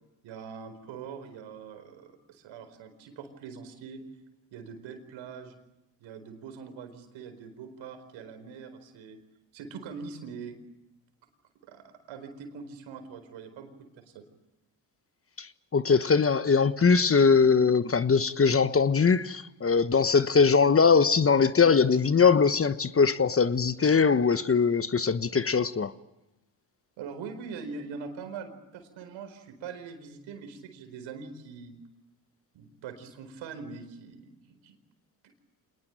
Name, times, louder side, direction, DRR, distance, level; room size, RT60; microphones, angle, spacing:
voice 1, 0.2-4.0 4.5-5.6 6.0-9.2 9.5-10.6 11.6-14.2 27.0-31.7 32.5-34.8 35.2-35.3, right 5 dB, 75° right, 4.6 m, -43 dB
voice 2, 15.7-25.9, left 5 dB, 30° left, 1.2 m, -21 dB
26.5 x 20.0 x 9.2 m
hypercardioid pair, 60°, 47 cm